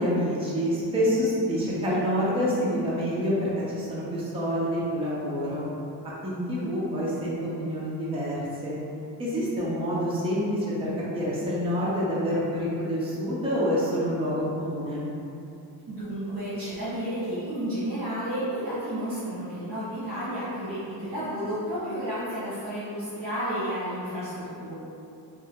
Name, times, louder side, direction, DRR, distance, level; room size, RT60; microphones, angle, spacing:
voice 1, 0.0-5.6 6.0-8.7 9.2-15.0, equal, 15° right, -8 dB, 0.4 m, -27 dB
voice 2, 15.9-24.7, equal, 70° right, -13 dB, 1.1 m, -32 dB
2.7 x 2.1 x 3.4 m, 2.7 s
wide cardioid pair, 175°, 43 cm